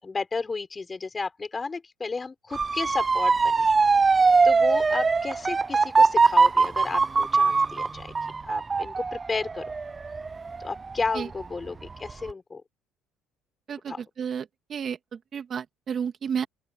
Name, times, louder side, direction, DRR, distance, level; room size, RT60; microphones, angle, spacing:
voice 1, 0.0-3.7 4.4-8.1 8.5-9.6 10.6-12.6 13.9-14.0, left 4 dB, 25° left, 6.0 m, -33 dB
Motor vehicle (road) / Siren, 2.5-11.4 11.9-12.3, right 4 dB, 25° right, 0.7 m, -22 dB
voice 2, 13.7-15.0 15.3-16.5, right 7 dB, 45° right, 2.8 m, -31 dB
open air
supercardioid pair, 85°, 0 cm